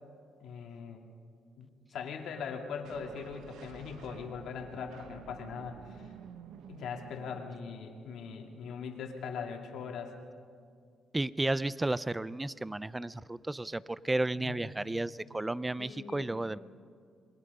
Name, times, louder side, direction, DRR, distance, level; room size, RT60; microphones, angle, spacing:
voice 1, 0.4-1.0 1.6-6.1 6.7-10.1 14.3-14.7 15.8-16.3, left 6 dB, 75° left, 3 dB, 2.3 m, -41 dB
sound 1, 2.8-8.0, right 7 dB, 85° right, 0.9 m, -51 dB
voice 2, 11.1-16.6, right 2 dB, 15° right, 18 dB, 0.5 m, -33 dB
27.5 x 21.5 x 5.5 m, 2.2 s
cardioid pair, 95°, 0 cm